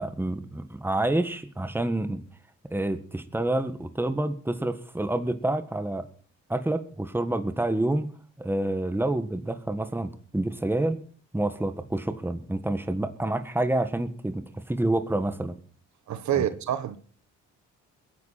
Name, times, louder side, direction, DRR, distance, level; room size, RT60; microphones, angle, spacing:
voice 1, 0.0-2.2 2.7-6.1 6.5-11.0 11.3-15.6 16.3-16.5, right 1 dB, 5° right, 1.6 m, -28 dB
voice 2, 16.1-17.0, right 10 dB, 70° right, 1.4 m, -27 dB
21.5 x 10.5 x 4.3 m
cardioid pair, 90°, 30 cm